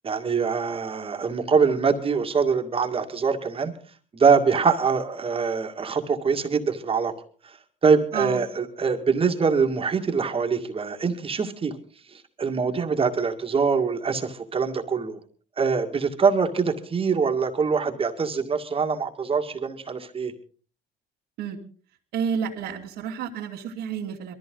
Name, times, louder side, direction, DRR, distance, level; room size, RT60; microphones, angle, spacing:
voice 1, 0.0-3.7 4.1-7.1 7.8-11.7 12.4-15.2 15.6-20.3, right 5 dB, 35° right, 4 dB, 2.1 m, -23 dB
voice 2, 22.1-24.3, right 7 dB, 85° right, -5 dB, 2.6 m, -30 dB
22.0 x 14.5 x 3.9 m, 0.41 s
cardioid pair, 110°, 17 cm